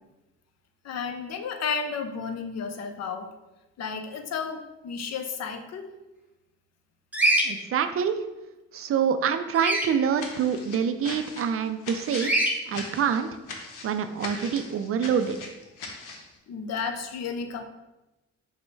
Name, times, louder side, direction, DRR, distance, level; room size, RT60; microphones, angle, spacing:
voice 1, 0.8-3.3 3.8-5.9 16.5-17.6, left 5 dB, 60° left, 6 dB, 0.6 m, -32 dB
Bird vocalization bird call bird song, 7.1-7.5 9.5-9.9 12.2-12.5, right 1 dB, 5° right, 0.8 m, -22 dB
voice 2, 7.4-8.2 8.7-12.3 12.7-13.3 13.8-15.4, right 7 dB, 50° right, 9 dB, 0.4 m, -26 dB
sound 1, 10.1-16.3, left 3 dB, 85° left, 0.8 m, -40 dB
5.3 x 2.1 x 4.5 m, 1.0 s
cardioid pair, 90°, 30 cm